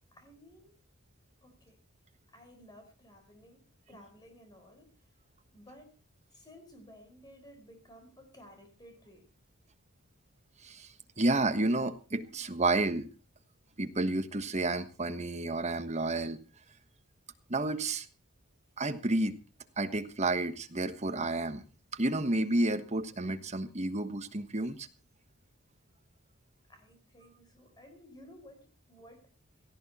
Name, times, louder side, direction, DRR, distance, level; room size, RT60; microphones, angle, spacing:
voice 1, 0.1-0.7 1.4-1.8 2.3-3.6 3.9-4.9 5.5-5.9 6.3-9.3 26.7-29.3, equal, 20° left, 6 dB, 4.5 m, -55 dB
voice 2, 11.2-13.1 13.8-16.4 17.5-18.1 18.8-19.4 19.8-21.6 21.9-24.9, right 2 dB, 30° right, 9 dB, 1.4 m, -30 dB
17.5 x 14.5 x 4.3 m, 0.34 s
head